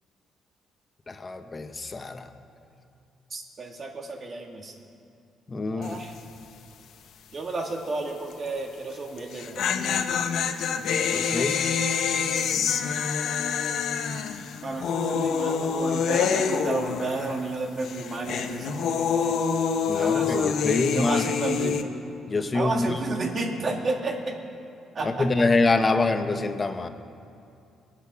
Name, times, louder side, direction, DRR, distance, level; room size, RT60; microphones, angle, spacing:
voice 1, 1.1-2.3 5.5-6.0 11.1-11.6 19.9-21.3 22.3-23.0 25.0-26.9, left 3 dB, 30° left, 8 dB, 1.1 m, -25 dB
voice 2, 3.3-4.7 5.7-6.1 7.3-10.2 10.8-11.6 14.6-19.4 19.9-21.8 22.5-24.4 24.9-25.4, right 3 dB, 45° right, 2 dB, 2.4 m, -32 dB
sound 1, 5.8-6.2 6.4-6.5 9.2-17.5 17.8-21.8, left 6 dB, 75° left, 1.0 m, -26 dB
22.0 x 8.1 x 6.2 m, 2.6 s
cardioid pair, 90°, 0 cm